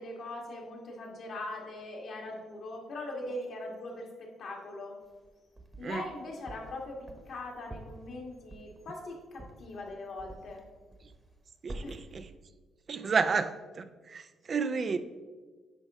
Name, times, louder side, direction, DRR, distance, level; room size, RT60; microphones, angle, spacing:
voice 1, 0.0-5.0 5.8-10.6 11.8-12.0, left 2 dB, 60° left, 0 dB, 1.7 m, -41 dB
sound 1, 5.0-6.1 6.5-10.6 10.9-11.4 11.7-12.2, right 2 dB, 20° right, 1.1 m, -47 dB
voice 2, 11.6-12.2 12.9-15.0, right 5 dB, 45° right, 11 dB, 0.4 m, -31 dB
9.1 x 5.2 x 3.6 m, 1.4 s
cardioid pair, 90°, 0 cm